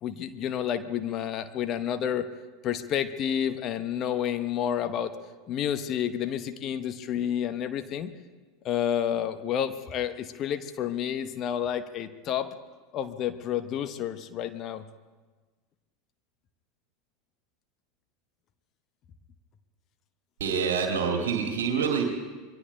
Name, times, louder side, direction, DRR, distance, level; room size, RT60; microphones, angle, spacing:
voice 1, 0.0-2.3 2.6-5.1 5.5-8.1 8.6-12.5 12.9-14.8, left 9 dB, 35° left, 10 dB, 0.8 m, -30 dB
voice 2, 20.4-22.0, right 6 dB, 60° right, 1 dB, 2.1 m, -26 dB
27.0 x 22.5 x 2.2 m, 1.3 s
figure-of-eight pair, 80°, 0 cm